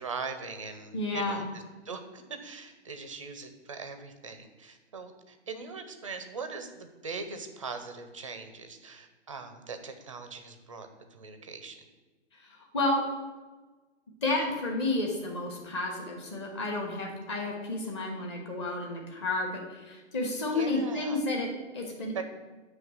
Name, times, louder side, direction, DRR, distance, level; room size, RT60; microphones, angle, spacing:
voice 1, 0.0-11.8 20.5-21.2 22.1-22.2, right 4 dB, 30° right, 7 dB, 0.4 m, -41 dB
voice 2, 0.9-1.4 12.3-13.0 14.2-22.2, left 2 dB, 25° left, 0 dB, 1.1 m, -31 dB
8.9 x 3.2 x 6.2 m, 1.3 s
hypercardioid pair, 170°, 36 cm